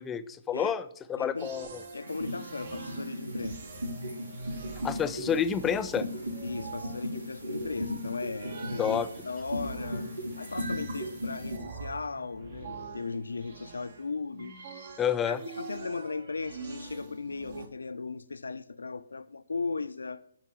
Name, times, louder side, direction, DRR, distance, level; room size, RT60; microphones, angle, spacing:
voice 1, 0.0-1.8 4.8-6.1 8.8-9.1 15.0-15.4, left 8 dB, 15° left, 0.5 m, -29 dB
voice 2, 1.2-1.5 1.9-3.6 6.4-10.1 10.4-14.6 15.3-20.2, left 4 dB, 75° left, 0.6 m, -37 dB
sound 1, 1.4-17.7, right 4 dB, 55° right, 1.7 m, -44 dB
sound 2, 2.1-11.6, equal, 85° right, 3.7 m, -37 dB
10.5 x 5.9 x 7.1 m
figure-of-eight pair, 135°, 0 cm